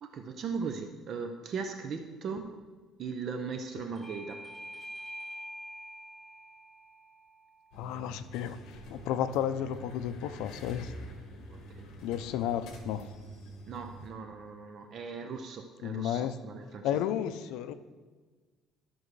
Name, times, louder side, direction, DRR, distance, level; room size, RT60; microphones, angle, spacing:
voice 1, 0.0-2.5 3.0-4.4 11.5-11.9 13.7-16.9, right 5 dB, 40° right, 5 dB, 0.5 m, -38 dB
Bell / Doorbell, 4.0-9.1, equal, 10° left, 0.9 m, -47 dB
voice 2, 7.7-10.9 12.0-13.1 15.8-16.4 16.8-17.7, left 10 dB, 80° left, 11 dB, 0.5 m, -33 dB
sound 1, 7.7-14.1, equal, 60° left, 1.4 m, -47 dB
12.5 x 6.1 x 3.2 m, 1.4 s
cardioid pair, 170°, 0 cm